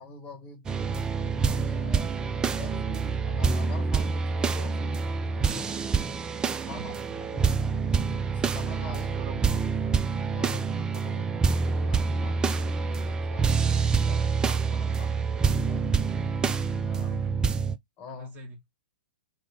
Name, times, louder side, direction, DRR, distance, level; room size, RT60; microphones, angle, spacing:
voice 1, 0.0-2.1 2.6-5.8 6.6-6.9 7.2-7.8 8.3-9.1 10.3-13.5 14.1-15.9 16.8-17.1 18.0-18.3, left 3 dB, 30° left, 1.3 m, -45 dB
sound 1, 0.7-17.8, right 5 dB, 15° right, 0.3 m, -27 dB
voice 2, 6.6-7.3 8.9-9.6 16.9-17.5 18.0-18.6, equal, 30° right, 1.4 m, -44 dB
2.9 x 2.4 x 3.2 m
figure-of-eight pair, 110°, 6 cm